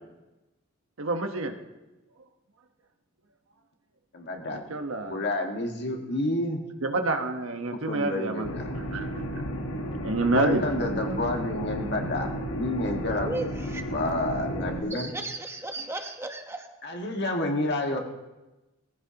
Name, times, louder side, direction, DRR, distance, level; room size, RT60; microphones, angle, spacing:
voice 1, 1.0-1.6 4.5-5.2 6.8-8.5 8.9-9.1 10.0-10.6, right 2 dB, 90° right, 6 dB, 1.2 m, -27 dB
voice 2, 4.1-4.6 5.1-6.6 7.8-8.7 10.3-13.3 13.9-15.1 16.8-18.0, left 1 dB, 55° left, 2 dB, 1.7 m, -29 dB
sound 1, 8.4-14.8, equal, 85° left, 1.4 m, -33 dB
voice 3, 13.2-13.8 14.9-16.7, right 2 dB, 15° right, 4 dB, 1.1 m, -35 dB
21.5 x 15.0 x 2.9 m, 1.1 s
head